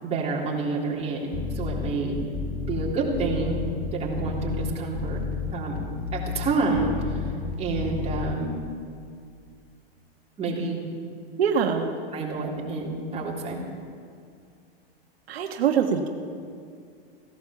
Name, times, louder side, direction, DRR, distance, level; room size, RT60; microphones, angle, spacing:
voice 1, 0.0-2.2 2.7-3.6 3.9-5.2 5.5-5.8 6.1-7.2 7.6-8.5 10.4-10.8 12.1-13.6, right 3 dB, 20° right, -4 dB, 3.5 m, -28 dB
sound 1, 1.3-8.3, left 6 dB, 30° left, 1.5 m, -31 dB
voice 2, 11.4-11.9 15.3-16.1, right 7 dB, 85° right, 3 dB, 1.4 m, -23 dB
16.0 x 12.0 x 7.1 m, 2.2 s
hypercardioid pair, 130°, 30 cm